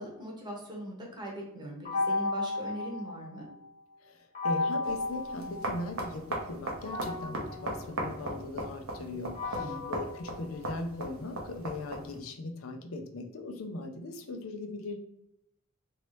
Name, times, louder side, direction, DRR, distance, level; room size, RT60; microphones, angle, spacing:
voice 1, 0.0-3.5 9.5-9.9, equal, 20° right, -1 dB, 0.9 m, -40 dB
sound 1, 1.8-3.7 4.3-6.1 6.8-11.1, left 3 dB, 35° left, 0.7 m, -35 dB
voice 2, 4.0-15.0, left 2 dB, 90° left, 5 dB, 0.5 m, -39 dB
sound 2, 4.8-12.2, right 2 dB, 90° right, 0.8 m, -39 dB
3.0 x 2.7 x 3.1 m, 0.80 s
head